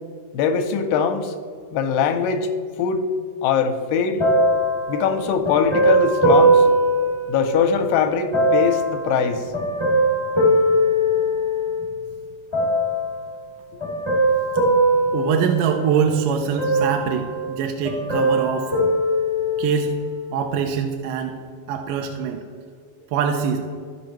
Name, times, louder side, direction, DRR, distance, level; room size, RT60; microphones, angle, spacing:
voice 1, 0.3-1.3 1.7-2.5 2.8-3.1 3.4-4.2 4.9-6.7 7.3-9.5, left 6 dB, 80° left, 6 dB, 2.3 m, -21 dB
sound 1, 4.2-7.8 8.3-11.8 12.5-13.2 13.8-16.1 16.6-17.6 17.8-19.9 20.5-20.6, right 1 dB, 30° left, 0.5 m, -20 dB
voice 2, 15.1-18.7 19.6-19.9 20.3-21.4 21.7-22.4 23.1-23.6, right 7 dB, 80° right, 3 dB, 2.2 m, -23 dB
15.5 x 5.2 x 3.0 m, 2.1 s
omnidirectional pair, 4.1 m